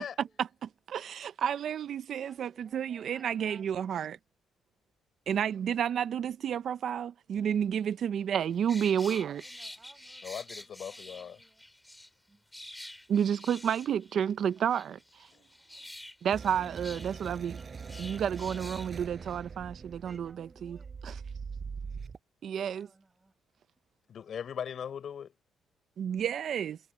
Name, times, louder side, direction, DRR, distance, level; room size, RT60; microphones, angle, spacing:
voice 1, 0.4-4.2 5.3-9.4 13.1-15.3 16.2-17.6 18.0-21.2 22.4-22.9 26.0-26.8, right 8 dB, 65° right, 0.6 m, -31 dB
voice 2, 2.2-4.1 9.0-11.6 12.3-12.4 20.0-20.9 22.7-23.3, right 2 dB, 20° right, 6.6 m, -60 dB
sound 1, 8.5-12.1 12.5-14.2 14.5-18.9 19.2-19.4, left 1 dB, 10° left, 6.0 m, -48 dB
voice 3, 10.2-11.4 24.1-25.3, left 8 dB, 60° left, 5.4 m, -39 dB
sound 2, 16.3-22.2, right 5 dB, 40° right, 5.9 m, -42 dB
cardioid pair, 90°, 0 cm